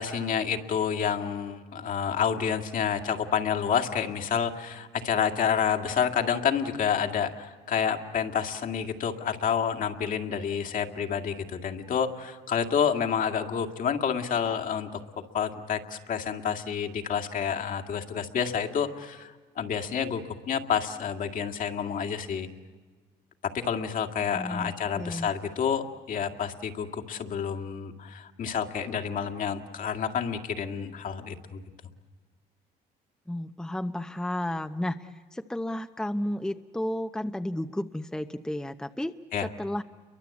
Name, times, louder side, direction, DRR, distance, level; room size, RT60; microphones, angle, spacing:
voice 1, 0.0-15.0 15.3-22.5 23.5-31.6 39.3-39.5, left 7 dB, 55° left, 6 dB, 2.1 m, -29 dB
voice 2, 24.3-25.3 33.3-39.1 39.4-39.8, left 1 dB, 5° left, 8 dB, 0.8 m, -32 dB
30.0 x 23.5 x 8.4 m, 1.4 s
cardioid pair, 110°, 17 cm